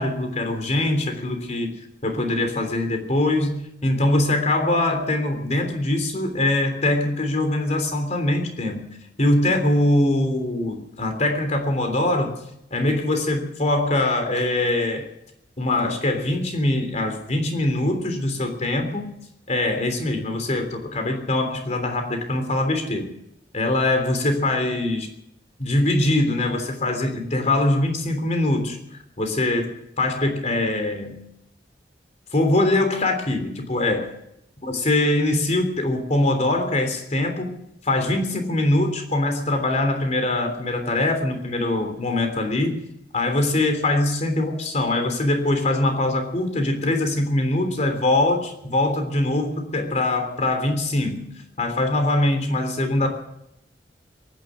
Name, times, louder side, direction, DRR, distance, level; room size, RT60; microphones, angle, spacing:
voice 1, 0.0-1.7 2.0-12.3 12.7-15.1 15.6-19.1 19.5-23.1 23.5-25.1 25.6-28.8 29.2-29.7 30.0-31.2 32.3-34.1 34.6-37.5 37.8-42.8 43.1-51.3 51.6-53.1, left 2 dB, 40° left, 5 dB, 3.3 m, -22 dB
23.0 x 10.0 x 6.2 m, 0.78 s
head